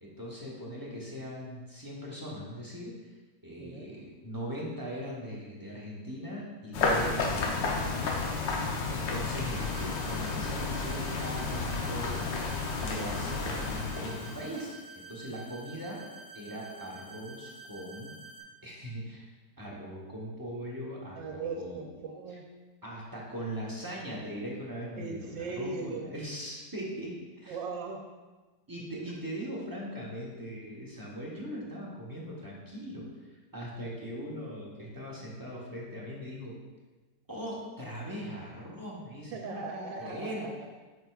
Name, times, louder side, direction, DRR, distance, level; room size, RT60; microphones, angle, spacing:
voice 1, 0.0-3.1 3.4-8.1 8.9-12.2 12.8-14.8 15.1-16.0 16.3-18.1 18.6-19.3 19.6-21.8 22.3-22.4 22.8-27.6 28.7-33.1 33.5-36.5 37.3-40.5, equal, 20° right, -5 dB, 0.6 m, -40 dB
voice 2, 3.6-3.9 21.1-22.4 25.0-26.1 27.5-28.0 39.3-40.7, right 4 dB, 90° right, 2 dB, 1.4 m, -38 dB
sound 1, 6.7-14.7, left 3 dB, 80° left, 1.5 m, -32 dB
sound 2, 9.4-18.4, right 3 dB, 35° left, 0.5 m, -49 dB
7.7 x 5.3 x 2.3 m, 1.3 s
omnidirectional pair, 2.0 m